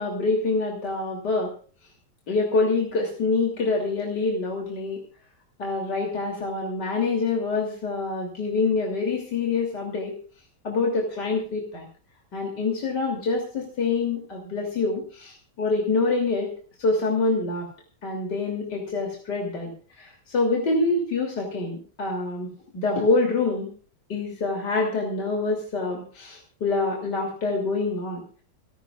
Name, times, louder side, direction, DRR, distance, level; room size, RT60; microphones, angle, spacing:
voice 1, 0.0-1.5 2.3-5.0 5.6-10.2 10.6-11.9 12.3-16.5 16.8-17.7 18.0-19.7 20.0-23.7 24.1-28.2, left 3 dB, 75° left, 1 dB, 3.7 m, -26 dB
27.5 x 13.5 x 2.5 m, 0.41 s
omnidirectional pair, 1.8 m